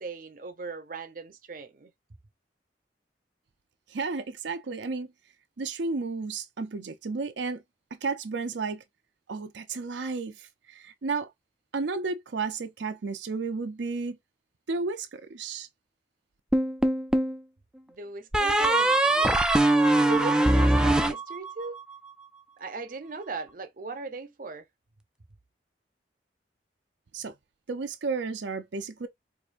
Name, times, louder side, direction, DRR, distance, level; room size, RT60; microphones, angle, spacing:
voice 1, 0.0-1.9 17.9-19.3 20.0-21.8 22.6-24.6, right 4 dB, 50° right, 0.6 m, -38 dB
voice 2, 3.9-5.1 5.6-7.6 8.0-8.8 9.3-11.3 11.7-14.2 14.7-15.7 27.1-27.3 27.7-29.1, right 4 dB, 90° right, 0.6 m, -32 dB
sound 1, 16.5-17.4 18.3-21.8, right 1 dB, 5° right, 0.4 m, -22 dB
4.6 x 2.6 x 2.5 m
head